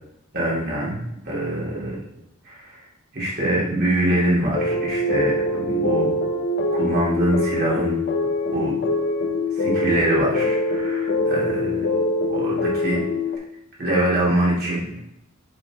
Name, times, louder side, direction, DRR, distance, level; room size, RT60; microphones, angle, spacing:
voice 1, 0.3-2.0 2.4-2.8 3.1-6.2 6.7-8.0 8.5-8.8 9.5-11.9 12.3-13.0 13.8-14.9, right 1 dB, 50° right, -6 dB, 3.0 m, -24 dB
sound 1, 4.5-13.4, left 2 dB, 50° left, 0.9 m, -23 dB
7.9 x 7.1 x 3.1 m, 0.81 s
head